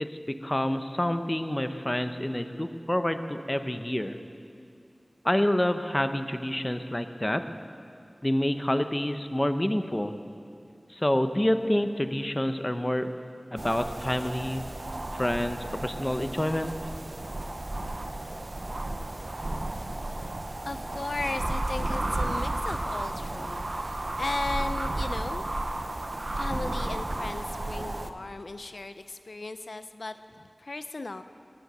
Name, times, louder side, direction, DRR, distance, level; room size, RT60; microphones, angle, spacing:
voice 1, 0.0-4.2 5.2-7.4 8.2-10.1 10.9-13.1 13.5-14.6 15.1-16.7, left 1 dB, 25° left, 9 dB, 0.7 m, -28 dB
sound 1, 13.6-28.1, right 2 dB, 60° right, 0.7 m, -33 dB
voice 2, 20.6-25.4 26.3-31.2, left 2 dB, 90° left, 10 dB, 0.4 m, -36 dB
20.0 x 7.7 x 6.6 m, 2.5 s
wide cardioid pair, 55°, 0 cm